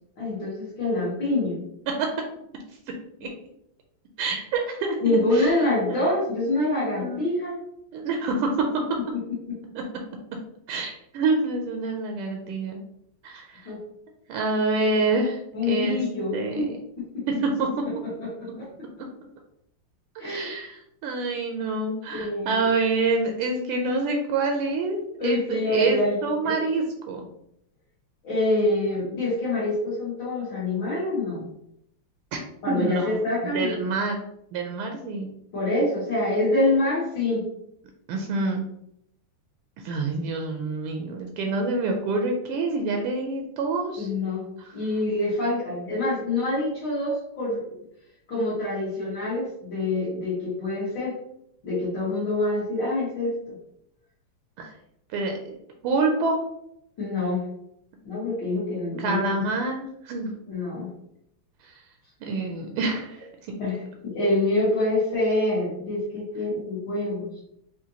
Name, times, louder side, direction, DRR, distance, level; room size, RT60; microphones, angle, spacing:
voice 1, 0.2-1.6 5.0-7.5 13.7-13.8 15.5-16.7 17.1-17.2 18.6-18.7 20.2-20.5 22.1-22.6 25.2-26.2 26.4-26.5 28.2-31.5 32.6-33.8 35.5-37.4 44.0-47.6 48.3-51.1 51.6-53.6 57.0-57.4 58.0-59.2 60.5-60.9 63.6-67.3, left 2 dB, 60° left, -8 dB, 2.0 m, -26 dB
voice 2, 4.2-5.6 5.9-6.1 6.6-7.3 7.9-8.8 9.7-9.8 10.7-12.8 13.2-13.7 14.3-15.4 15.7-16.0 16.3-16.8 17.3-17.7 20.1-27.2 32.7-33.2 33.4-34.2 34.5-35.3 38.1-38.6 39.8-44.1 44.6-44.7 54.6-54.7 55.1-55.5 55.8-56.4 59.0-60.3 61.6-61.8 62.2-63.6, right 3 dB, 80° right, 3 dB, 1.5 m, -27 dB
5.0 x 2.6 x 2.7 m, 0.76 s
omnidirectional pair, 2.4 m